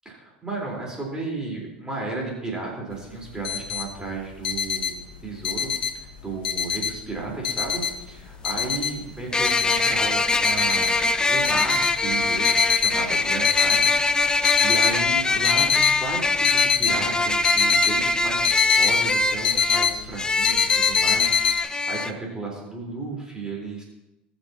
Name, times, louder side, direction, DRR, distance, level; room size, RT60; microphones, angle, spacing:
voice 1, 0.1-11.0 11.3-14.3 14.6-23.8, right 3 dB, 15° right, -3 dB, 4.1 m, -34 dB
sound 1, 2.9-3.0 3.2-3.9 4.2-6.1 6.4-7.2 7.4-9.1 9.4-10.0 10.4-11.0 11.4-13.0 13.4-14.0 14.3-15.0 15.3-15.9 16.4-18.9 19.2-20.0 20.4-21.6, left 7 dB, 75° left, 1.3 m, -23 dB
sound 2, 7.7-7.8 9.3-22.1, left 3 dB, 15° left, 0.8 m, -23 dB
21.0 x 7.2 x 2.9 m, 0.95 s
hypercardioid pair, 80°, 5 cm